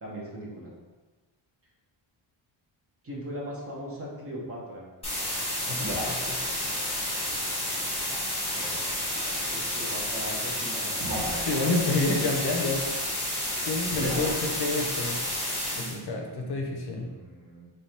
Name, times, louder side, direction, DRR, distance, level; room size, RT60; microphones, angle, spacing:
voice 1, 0.0-0.7 3.0-4.9 8.1-8.8 9.5-11.1 11.7-12.0 15.7-17.7, equal, 30° right, -3 dB, 0.9 m, -40 dB
sound 1, 5.0-16.0, left 1 dB, 10° left, 1.2 m, -30 dB
voice 2, 5.7-6.4 11.4-12.9 13.6-15.2 15.8-17.1, left 2 dB, 55° left, 2 dB, 0.6 m, -29 dB
sound 2, 5.8-6.7 9.1-9.3 11.0-11.7 13.9-14.5, right 1 dB, 70° right, 1.4 m, -35 dB
3.3 x 3.2 x 4.2 m, 1.2 s
wide cardioid pair, 170°, 47 cm